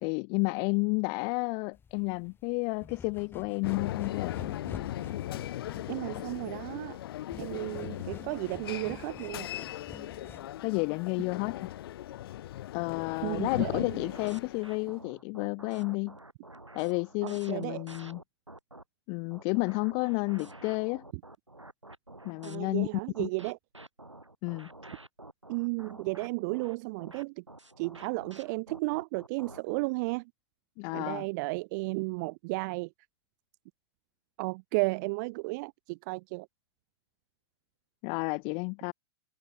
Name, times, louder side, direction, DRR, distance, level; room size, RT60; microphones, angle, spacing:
voice 1, 0.0-4.4 10.6-11.7 12.7-16.2 16.7-18.2 19.1-21.0 22.2-22.9 23.2-23.3 24.4-24.7 30.8-31.2 38.0-38.9, left 35 dB, 35° left, 0.8 m, -31 dB
sound 1, 1.7-10.7, left 6 dB, 15° left, 1.7 m, -48 dB
sound 2, 3.6-14.9, left 13 dB, 55° left, 1.4 m, -38 dB
voice 2, 5.9-7.0 7.4-9.5 13.2-14.1 17.2-17.9 22.4-23.6 25.5-27.4 27.8-30.2 30.9-32.9 34.4-36.5, right 27 dB, 40° right, 0.9 m, -33 dB
sound 3, 14.0-18.8 19.3-22.6 23.1-29.8, right 2 dB, 90° right, 2.4 m, -49 dB
figure-of-eight pair, 100°, 15 cm